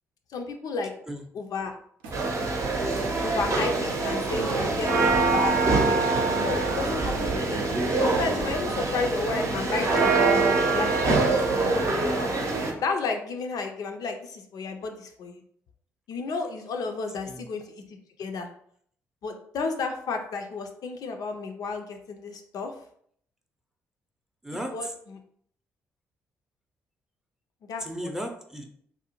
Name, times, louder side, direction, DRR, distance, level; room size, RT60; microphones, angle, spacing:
voice 1, 0.3-0.9 1.3-1.7 3.2-7.6 8.0-11.0 11.3-12.3 12.8-15.4 16.1-18.5 19.2-22.7 24.5-25.2 27.7-28.1, left 4 dB, 60° left, 4 dB, 0.4 m, -33 dB
sound 1, 2.0-2.4 2.9-3.2 4.3-8.6 9.7-10.1 11.1-11.5, right 1 dB, 80° right, 0.5 m, -41 dB
sound 2, 2.1-12.7, right 3 dB, 45° right, 0.7 m, -24 dB
voice 2, 17.1-17.5 24.4-24.9 27.8-28.7, equal, 5° right, 3 dB, 0.5 m, -35 dB
2.6 x 2.0 x 2.8 m, 0.64 s
hypercardioid pair, 45°, 7 cm